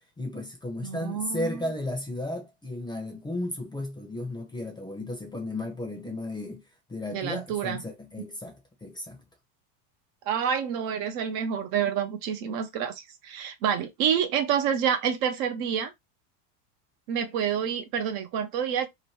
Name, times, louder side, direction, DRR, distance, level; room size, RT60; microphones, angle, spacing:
voice 1, 0.2-6.6 6.9-9.2, left 1 dB, 10° left, 0.7 m, -34 dB
voice 2, 0.8-1.6 7.1-7.8 10.3-15.9 17.1-18.9, right 8 dB, 45° right, 0.7 m, -28 dB
2.9 x 2.1 x 3.2 m
supercardioid pair, 120°, 49 cm